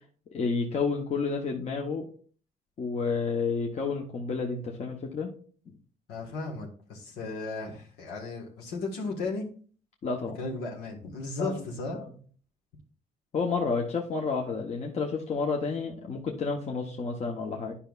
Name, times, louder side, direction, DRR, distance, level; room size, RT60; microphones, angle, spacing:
voice 1, 0.3-2.0 2.8-5.3 10.0-10.4 11.4-11.6 11.9-12.0 13.3-17.7, left 4 dB, 40° left, 1 dB, 1.0 m, -30 dB
voice 2, 6.1-9.5 10.4-12.0, left 3 dB, 85° left, -1 dB, 1.6 m, -35 dB
10.0 x 5.6 x 2.4 m, 0.43 s
cardioid pair, 110°, 17 cm